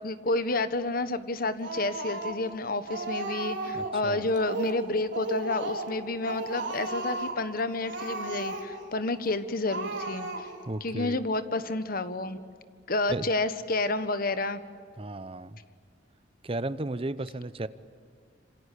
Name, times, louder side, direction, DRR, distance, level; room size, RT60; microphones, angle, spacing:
voice 1, 0.0-10.5 10.8-12.4 12.9-14.6, left 2 dB, 50° left, 12 dB, 1.3 m, -30 dB
Speech, 1.6-2.5 2.9-4.0 4.3-4.8 5.1-6.0 6.2-7.4 7.8-8.9 9.2-9.4 9.7-10.7, right 2 dB, 75° right, 3.6 m, -35 dB
voice 2, 3.7-4.3 10.6-11.2 13.1-13.3 15.0-15.6 16.4-17.7, right 2 dB, 30° right, 15 dB, 0.8 m, -34 dB
27.0 x 26.0 x 8.5 m, 2.1 s
head